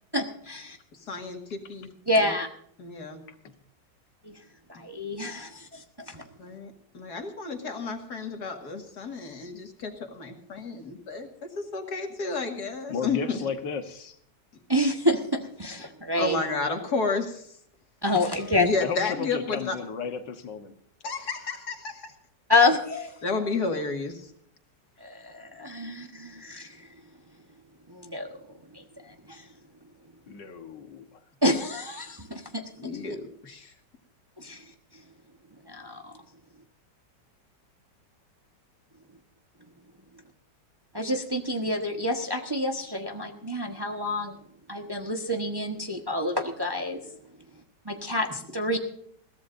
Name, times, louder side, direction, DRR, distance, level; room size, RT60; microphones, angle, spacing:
voice 1, 0.1-0.8 2.1-2.5 4.2-4.3 4.8-6.2 14.7-16.4 18.0-18.7 22.5-23.1 25.0-26.9 27.9-28.3 28.7-29.4 31.4-32.6 34.4-34.6 35.7-36.1 40.9-44.3 44.7-47.0 47.8-48.8, left 1 dB, 15° right, 3 dB, 1.1 m, -28 dB
voice 2, 1.0-1.9 2.2-2.3 2.8-3.2 6.4-13.4 16.2-17.5 18.6-19.8 21.0-22.1 23.2-24.3 32.8-33.7, left 3 dB, 60° left, 4 dB, 2.5 m, -32 dB
voice 3, 12.9-14.2 18.3-20.7 30.3-31.2, left 6 dB, 85° left, 7 dB, 2.0 m, -34 dB
21.5 x 16.0 x 2.6 m, 0.65 s
omnidirectional pair, 1.9 m